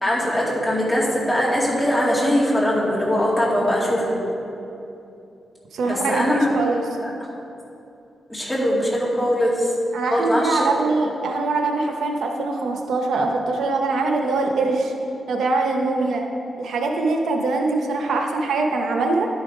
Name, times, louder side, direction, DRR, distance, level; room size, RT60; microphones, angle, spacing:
voice 1, 0.0-4.2 5.8-6.5 7.0-7.1 8.3-9.7 10.0-10.7, equal, 10° left, -6 dB, 2.3 m, -21 dB
voice 2, 5.7-6.8 9.9-14.9 15.3-16.2 16.6-19.3, right 3 dB, 85° right, 2 dB, 0.8 m, -23 dB
11.0 x 5.6 x 4.9 m, 2.7 s
cardioid pair, 100°, 0 cm